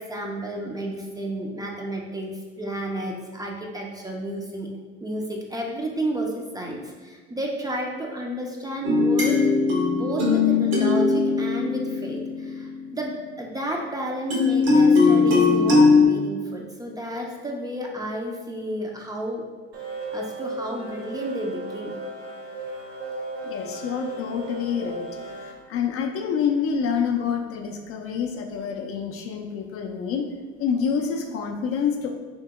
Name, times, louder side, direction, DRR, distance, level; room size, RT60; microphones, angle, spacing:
voice 1, 0.0-4.7 5.0-9.4 9.9-19.4 20.1-22.0, right 1 dB, 10° right, 0 dB, 0.5 m, -32 dB
sound 1, 8.8-13.1 14.3-16.1, left 4 dB, 70° right, 1.1 m, -19 dB
sound 2, 19.7-25.5, right 2 dB, 45° right, 0.9 m, -35 dB
voice 2, 23.4-25.1 25.4-30.3 30.6-32.1, left 7 dB, 45° left, 3 dB, 0.5 m, -27 dB
2.9 x 2.7 x 3.6 m, 1.4 s
hypercardioid pair, 75°, 32 cm